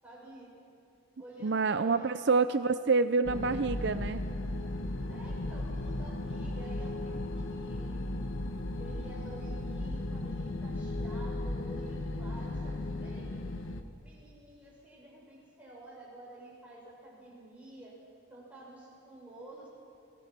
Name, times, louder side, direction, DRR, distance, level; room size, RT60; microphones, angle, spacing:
voice 1, 0.0-0.5 1.2-2.1 5.1-8.2 8.8-13.6 14.0-18.0 18.3-19.7, right 1 dB, 5° right, -6 dB, 7.2 m, -50 dB
voice 2, 1.4-4.2, right 4 dB, 60° right, 11 dB, 0.5 m, -27 dB
sound 1, 3.2-13.8, left 2 dB, 85° left, 1.4 m, -36 dB
30.0 x 20.5 x 6.0 m, 2.6 s
head